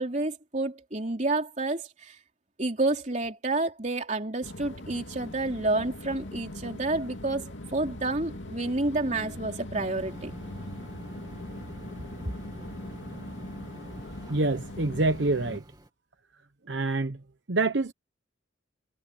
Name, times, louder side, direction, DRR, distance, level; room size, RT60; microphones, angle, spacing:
voice 1, 0.0-2.2 2.6-10.3 11.9-12.3, right 2 dB, 40° right, 3.4 m, -29 dB
sound 1, 4.4-15.6, left 1 dB, 80° left, 2.6 m, -41 dB
sound 2, 9.7-15.9, right 1 dB, 20° right, 2.7 m, -46 dB
voice 2, 14.3-15.6 16.7-17.2 17.5-17.9, right 2 dB, 70° right, 1.0 m, -26 dB
head